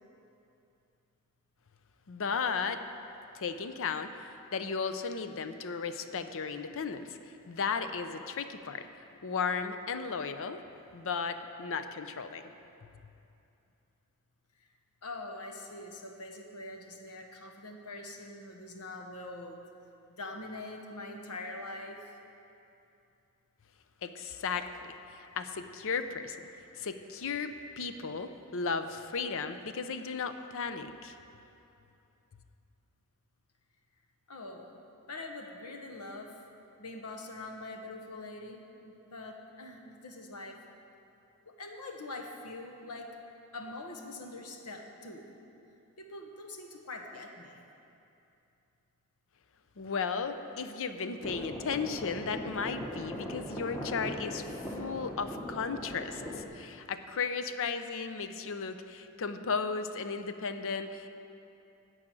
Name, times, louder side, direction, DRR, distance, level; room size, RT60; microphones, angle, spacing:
voice 1, 2.1-2.8 3.3-4.1 4.5-7.2 7.5-8.9 9.2-10.6 10.9-12.4 24.0-24.6 25.1-26.4 26.8-31.2 49.8-54.4 54.7-61.1, left 5 dB, 65° left, 9 dB, 0.6 m, -35 dB
voice 2, 15.0-19.6 20.1-22.2 34.3-34.7 35.1-36.4 36.8-40.6 41.4-43.1 43.5-45.3 46.0-47.6, left 2 dB, 90° left, 3 dB, 1.3 m, -44 dB
sound 1, 51.2-56.4, equal, 15° left, 1.1 m, -39 dB
13.5 x 4.9 x 8.9 m, 2.7 s
head